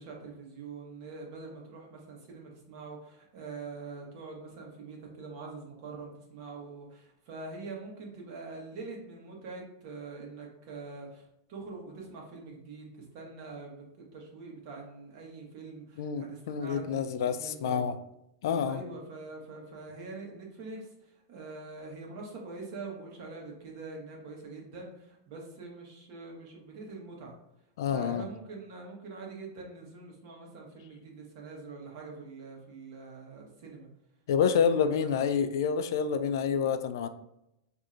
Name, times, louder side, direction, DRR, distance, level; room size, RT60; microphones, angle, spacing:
voice 1, 0.0-11.2 11.5-17.9 18.7-27.4 27.9-33.9 34.5-35.3, right 3 dB, 50° right, -1 dB, 1.0 m, -44 dB
voice 2, 16.0-18.0 18.4-18.8 27.8-28.2 34.3-37.1, left 7 dB, 70° left, 10 dB, 0.3 m, -28 dB
4.3 x 2.6 x 2.5 m, 0.83 s
supercardioid pair, 165°, 2 cm